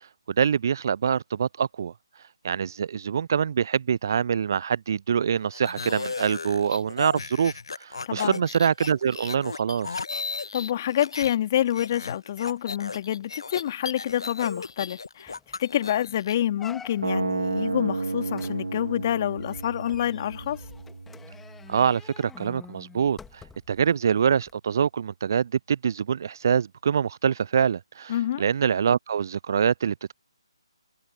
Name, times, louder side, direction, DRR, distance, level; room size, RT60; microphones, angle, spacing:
voice 1, 0.4-1.9 2.4-7.5 7.8-9.9 21.7-30.1, right 7 dB, 40° right, 0.3 m, -25 dB
sound 1, 5.5-11.4 11.6-16.3, left 4 dB, 60° left, 1.4 m, -36 dB
voice 2, 8.1-8.4 10.5-20.6 28.1-28.4, left 11 dB, 30° left, 2.4 m, -27 dB
sound 2, 15.3-15.6 16.0-16.1 16.6-17.3 18.3-23.8 24.4-24.5, left 6 dB, 5° left, 2.3 m, -48 dB
sound 3, 17.0-23.0, right 3 dB, 65° right, 3.2 m, -32 dB
figure-of-eight pair, 145°, 3 cm